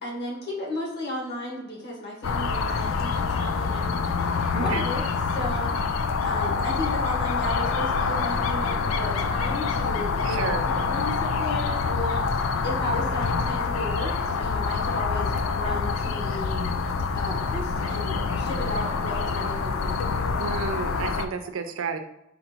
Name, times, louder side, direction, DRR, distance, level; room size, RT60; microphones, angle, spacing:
voice 1, 0.0-4.1 4.6-5.0 5.3-5.7 6.2-12.2 12.6-16.7 17.1-20.0, left 1 dB, 55° left, -3 dB, 1.7 m, -34 dB
sound 1, 2.2-21.3, left 4 dB, 80° left, 0.4 m, -26 dB
voice 2, 4.5-4.8 10.2-10.6 20.4-22.0, right 5 dB, 85° right, 7 dB, 0.6 m, -31 dB
4.3 x 2.6 x 4.4 m, 0.84 s
head